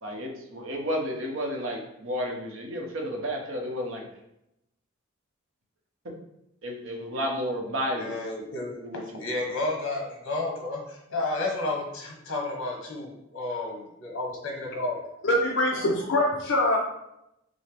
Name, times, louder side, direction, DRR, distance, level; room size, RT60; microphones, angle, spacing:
voice 1, 0.0-4.0 6.6-8.1 8.8-9.4, equal, 65° right, 1 dB, 0.9 m, -32 dB
voice 2, 7.9-15.0, left 2 dB, 85° left, 1 dB, 1.0 m, -32 dB
voice 3, 15.2-16.8, left 1 dB, 60° left, -2 dB, 0.6 m, -23 dB
6.1 x 2.1 x 3.3 m, 0.83 s
head